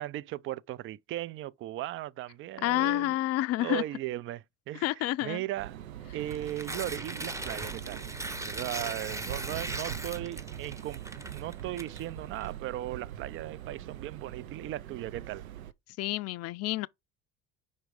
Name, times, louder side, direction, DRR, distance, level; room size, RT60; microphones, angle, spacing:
voice 1, 0.0-3.2 3.6-5.8 6.1-8.0 8.4-15.5, right 14 dB, 35° right, 0.4 m, -37 dB
voice 2, 2.6-3.8 4.8-5.4 16.0-16.9, left 15 dB, 40° left, 0.4 m, -29 dB
sound 1, 5.6-15.7, right 11 dB, 80° right, 0.6 m, -42 dB
Tearing, 6.2-12.5, right 1 dB, 5° right, 0.8 m, -39 dB
5.4 x 4.5 x 4.8 m
figure-of-eight pair, 60°, 42 cm